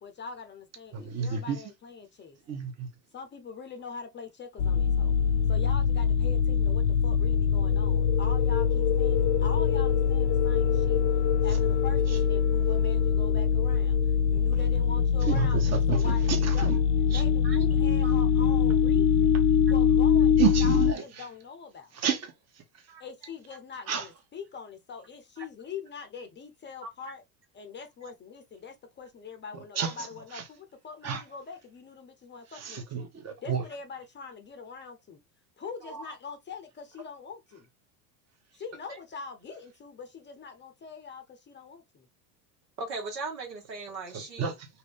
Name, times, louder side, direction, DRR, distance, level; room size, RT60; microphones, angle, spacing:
voice 1, 0.0-2.4 3.1-5.2 5.5-11.0 11.4-16.7 17.1-19.3 19.7-21.9 23.0-27.2 27.5-32.8 33.4-35.2 35.6-37.7 38.5-42.1, left 5 dB, 25° left, 0.6 m, -43 dB
voice 2, 0.9-1.6 2.5-2.9 15.3-16.8 17.1-17.2 20.4-21.0 21.9-22.3 23.9-24.1 29.8-30.1 30.3-30.4 31.0-31.2 32.5-33.6 44.1-44.7, right 7 dB, 30° right, 1.0 m, -30 dB
sound 1, 4.6-20.9, left 7 dB, 75° left, 0.5 m, -23 dB
voice 3, 35.8-36.1 42.8-44.5, right 3 dB, 85° right, 1.4 m, -38 dB
2.8 x 2.5 x 3.4 m
hypercardioid pair, 80°, 49 cm